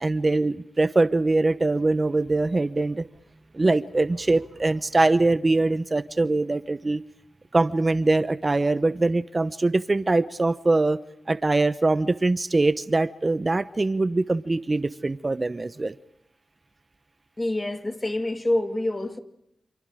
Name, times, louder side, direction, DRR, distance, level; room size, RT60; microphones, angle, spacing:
voice 1, 0.0-3.1 3.5-7.0 7.5-11.0 11.3-15.9, right 2 dB, 35° right, 0.9 m, -23 dB
voice 2, 17.4-19.2, left 1 dB, 25° left, 2.5 m, -26 dB
28.5 x 28.0 x 5.0 m
cardioid pair, 55°, 0 cm